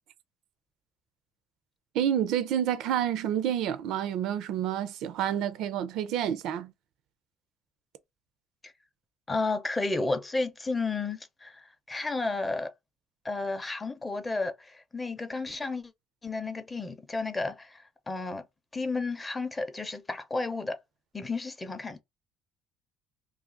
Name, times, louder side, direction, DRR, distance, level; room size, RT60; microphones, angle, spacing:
voice 1, 1.9-6.7, right 10 dB, 70° right, 0.4 m, -29 dB
voice 2, 9.3-12.7 13.2-15.9 16.2-18.4 18.7-20.8 21.1-22.0, left 3 dB, 15° left, 0.5 m, -32 dB
2.7 x 2.4 x 3.8 m
cardioid pair, 140°, 0 cm